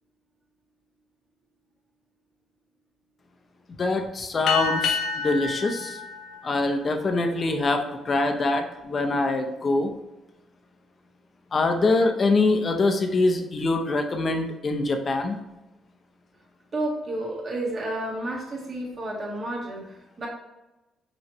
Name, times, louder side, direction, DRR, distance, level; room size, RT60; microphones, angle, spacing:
voice 1, 3.7-6.0 6.4-9.9 11.5-15.4, left 3 dB, 35° left, 5 dB, 0.7 m, -24 dB
sound 1, 4.5-7.4, left 5 dB, 80° left, 0.7 m, -29 dB
voice 2, 16.7-20.3, right 1 dB, 35° right, -3 dB, 1.5 m, -31 dB
5.5 x 3.2 x 3.0 m, 1.0 s
cardioid pair, 110°, 0 cm